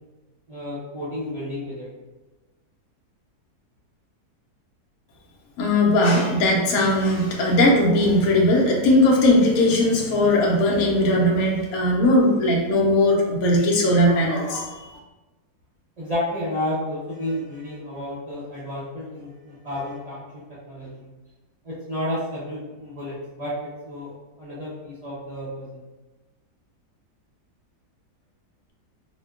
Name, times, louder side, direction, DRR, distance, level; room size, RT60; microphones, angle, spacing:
voice 1, 0.5-1.9 16.0-21.1 21.6-25.8, left 1 dB, 50° right, -11 dB, 0.4 m, -31 dB
voice 2, 5.6-14.8, left 1 dB, 70° left, -2 dB, 1.0 m, -19 dB
4.2 x 2.1 x 2.3 m, 1.1 s
omnidirectional pair, 1.7 m